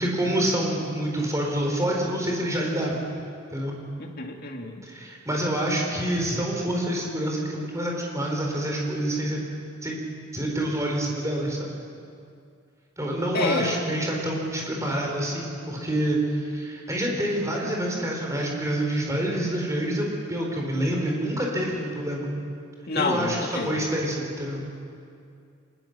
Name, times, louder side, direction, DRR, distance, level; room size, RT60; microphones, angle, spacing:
voice 1, 0.0-3.0 3.5-3.8 4.8-9.4 9.8-10.0 10.3-11.7 13.0-22.3 22.9-24.6, right 1 dB, 15° right, -1 dB, 4.5 m, -27 dB
voice 2, 4.0-4.8 13.3-13.7 22.9-23.9, left 3 dB, 50° left, 2 dB, 2.2 m, -28 dB
25.0 x 20.5 x 6.8 m, 2.4 s
head